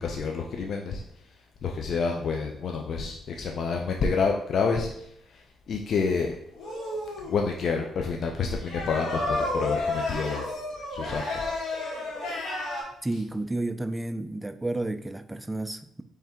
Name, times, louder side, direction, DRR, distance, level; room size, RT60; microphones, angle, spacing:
voice 1, 0.0-1.0 1.6-6.3 7.2-10.5 10.9-11.5, left 5 dB, 60° left, 0.5 m, -28 dB
sound 1, 6.5-7.4 8.6-12.8, left 2 dB, 80° left, 1.7 m, -31 dB
voice 2, 13.0-16.0, right 2 dB, 10° right, 0.3 m, -31 dB
4.3 x 3.4 x 3.6 m
cardioid pair, 90°, 0 cm